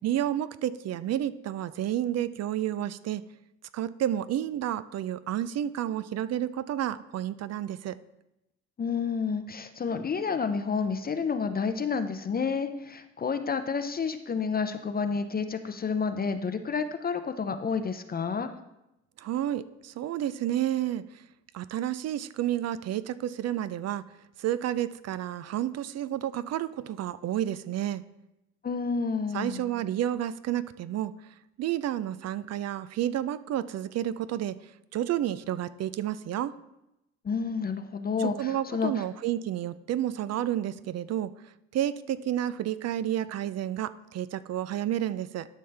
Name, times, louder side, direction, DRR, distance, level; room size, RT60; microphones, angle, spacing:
voice 1, 0.0-3.2 3.7-8.0 19.2-21.2 21.5-24.0 24.4-28.0 29.3-31.1 31.6-34.6 34.9-36.5 38.2-41.3 41.7-45.5, right 11 dB, 60° right, 16 dB, 0.4 m, -30 dB
voice 2, 8.8-18.5 28.6-29.7 37.2-39.0, left 5 dB, 30° left, 9 dB, 0.5 m, -30 dB
12.0 x 5.5 x 3.3 m, 0.90 s
cardioid pair, 90°, 30 cm